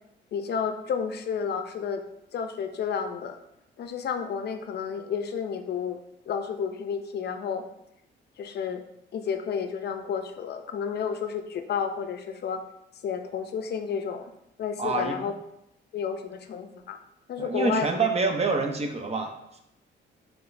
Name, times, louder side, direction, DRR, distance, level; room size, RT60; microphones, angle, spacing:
voice 1, 0.3-2.0 2.3-3.4 3.8-6.0 6.3-7.6 8.4-8.8 9.1-12.6 13.0-14.3 14.6-15.3 15.9-17.0 17.3-17.9, left 7 dB, 55° left, 7 dB, 0.5 m, -31 dB
voice 2, 14.8-15.2 17.4-19.6, right 4 dB, 30° right, 4 dB, 0.6 m, -27 dB
4.8 x 3.5 x 2.5 m, 0.82 s
cardioid pair, 90°, 20 cm